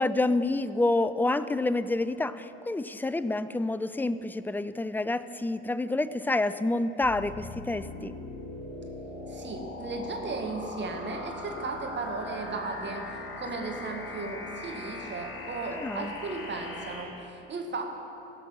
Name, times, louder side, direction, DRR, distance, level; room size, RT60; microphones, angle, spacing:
voice 1, 0.0-8.1 15.8-16.1, left 2 dB, 5° left, 14 dB, 0.3 m, -28 dB
sound 1, 7.0-17.0, left 2 dB, 55° left, 2.1 m, -40 dB
voice 2, 9.3-17.8, right 3 dB, 35° right, 2 dB, 1.8 m, -36 dB
16.5 x 6.0 x 5.6 m, 2.9 s
hypercardioid pair, 60°, 30 cm